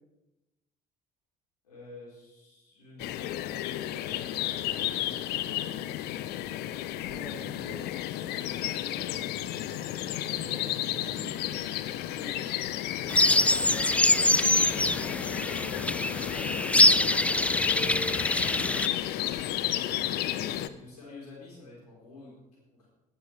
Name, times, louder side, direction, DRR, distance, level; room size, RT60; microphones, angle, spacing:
voice 1, 1.6-5.8 8.4-9.3 12.1-12.6 12.9-13.9 14.2-15.0 15.5-16.4 18.5-20.2 20.7-22.9, left 3 dB, 85° left, -4 dB, 4.5 m, -50 dB
sound 1, 3.0-20.7, left 13 dB, 60° left, 0.7 m, -33 dB
voice 2, 7.1-7.9 9.6-11.5, right 2 dB, 85° right, 0 dB, 2.4 m, -47 dB
sound 2, 13.1-18.9, left 2 dB, 5° left, 0.5 m, -24 dB
18.0 x 12.0 x 3.4 m, 1.0 s
figure-of-eight pair, 55°, 19 cm